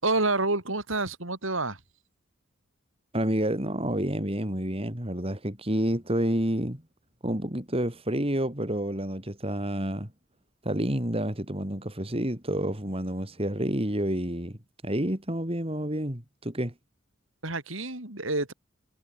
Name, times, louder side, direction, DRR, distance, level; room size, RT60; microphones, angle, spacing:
voice 1, 0.0-1.8 17.4-18.5, right 2 dB, 75° right, 6.4 m, -28 dB
voice 2, 3.1-6.8 7.2-10.1 10.6-14.6 14.8-16.7, right 1 dB, 30° right, 3.5 m, -29 dB
head